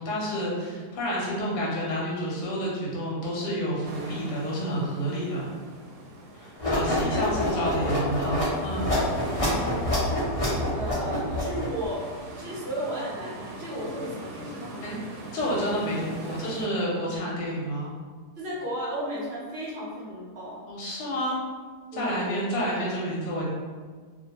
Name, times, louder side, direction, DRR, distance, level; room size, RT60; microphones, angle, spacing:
voice 1, 0.0-5.5 6.3-8.9 14.8-15.0 15.3-17.9 20.7-21.4 21.9-23.5, equal, 85° left, -4 dB, 1.2 m, -29 dB
sound 1, 3.8-16.7, right 1 dB, 80° right, 1.1 m, -43 dB
sound 2, 6.6-11.9, left 1 dB, 35° left, 0.5 m, -27 dB
voice 2, 6.9-7.8 8.9-9.1 10.8-12.0 12.4-15.0 18.4-20.6 21.9-22.2, right 1 dB, 50° right, -7 dB, 0.8 m, -34 dB
2.7 x 2.2 x 2.8 m, 1.5 s
omnidirectional pair, 1.8 m